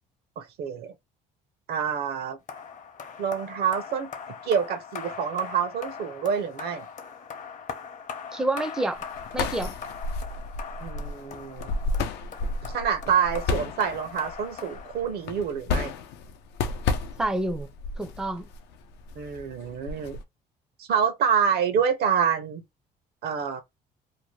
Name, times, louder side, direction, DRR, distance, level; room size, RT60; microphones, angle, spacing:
voice 1, 0.4-0.9 1.7-2.4 3.2-4.1 4.4-6.8 10.8-11.7 12.6-15.9 19.2-20.2 20.8-22.6 23.2-23.6, right 7 dB, 70° right, 0.7 m, -27 dB
sound 1, 2.5-15.5, left 6 dB, 50° left, 0.7 m, -41 dB
voice 2, 8.3-9.1 9.3-9.8 17.2-17.7 18.0-18.5, right 1 dB, 5° right, 0.4 m, -28 dB
sound 2, 8.9-20.2, left 4 dB, 85° left, 0.5 m, -32 dB
2.7 x 2.1 x 3.1 m
cardioid pair, 110°, 17 cm